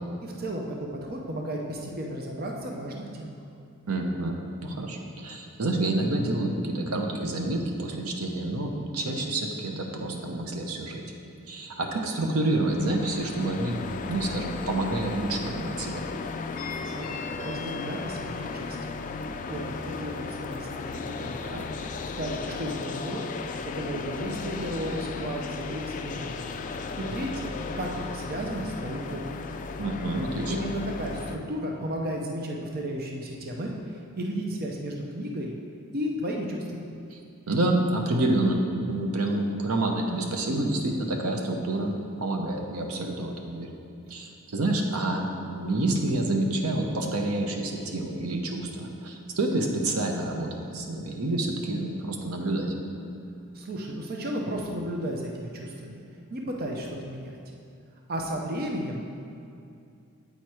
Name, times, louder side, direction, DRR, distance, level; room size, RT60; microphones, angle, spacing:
voice 1, 0.2-3.4 16.8-18.9 19.5-21.6 22.2-23.3 23.7-26.5 27.0-29.5 30.5-35.5 35.9-36.9 53.5-56.0 56.3-57.4 58.1-59.1, equal, 45° right, 0 dB, 0.6 m, -34 dB
voice 2, 3.9-11.0 11.5-16.0 29.8-30.5 37.1-37.2 37.5-38.6 38.9-43.7 44.1-52.7, right 2 dB, 80° right, 2 dB, 0.8 m, -28 dB
sound 1, 12.6-31.4, left 4 dB, 35° left, 0.3 m, -35 dB
8.1 x 4.5 x 4.7 m, 2.6 s
head